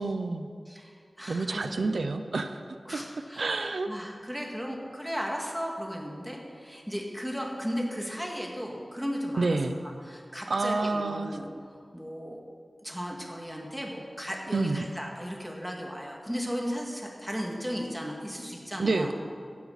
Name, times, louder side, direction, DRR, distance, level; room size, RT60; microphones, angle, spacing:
voice 1, 0.0-0.5 1.3-2.6 2.9-3.0 3.4-3.9 9.4-9.8 10.5-11.4 14.5-14.9 18.8-19.1, right 3 dB, 90° right, 8 dB, 0.6 m, -28 dB
voice 2, 0.7-1.9 2.9-11.5 11.9-12.4 12.8-19.1, equal, 5° right, -1 dB, 2.2 m, -36 dB
15.5 x 12.0 x 4.2 m, 2.2 s
wide cardioid pair, 80°, 0 cm